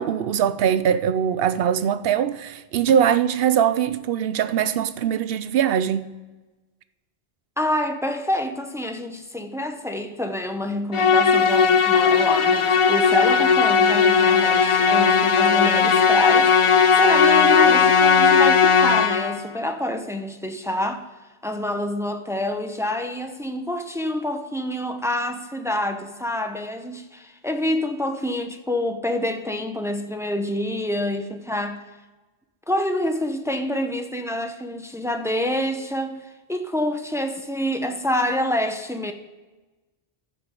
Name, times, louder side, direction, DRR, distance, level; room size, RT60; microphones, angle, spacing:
voice 1, 0.0-6.1, right 9 dB, 65° right, 0.8 m, -22 dB
voice 2, 7.6-21.0 21.4-31.8 32.7-39.1, left 1 dB, 5° right, 0.6 m, -27 dB
Musical instrument, 10.9-19.5, left 6 dB, 55° left, 0.3 m, -17 dB
14.5 x 5.1 x 5.2 m
omnidirectional pair, 1.1 m